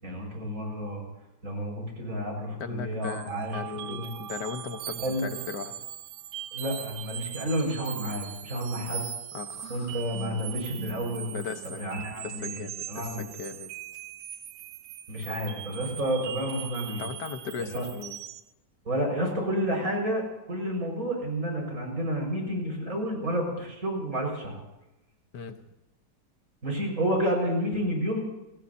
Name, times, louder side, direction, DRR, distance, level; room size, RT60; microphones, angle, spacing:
voice 1, 0.0-1.0 1.4-3.6 3.9-4.1 5.0-5.3 6.5-9.1 9.7-11.4 11.8-12.6 12.9-13.3 15.1-17.0 17.7-17.9 18.9-24.6 26.6-28.2, equal, 45° right, 1 dB, 6.1 m, -30 dB
voice 2, 2.6-5.7 9.3-9.9 11.3-11.8 12.2-13.7 17.0-18.2 25.3-25.6, left 5 dB, 65° left, 7 dB, 1.8 m, -37 dB
sound 1, 3.0-18.5, right 11 dB, 70° right, 1.3 m, -40 dB
28.0 x 18.5 x 2.8 m, 1.0 s
omnidirectional pair, 2.0 m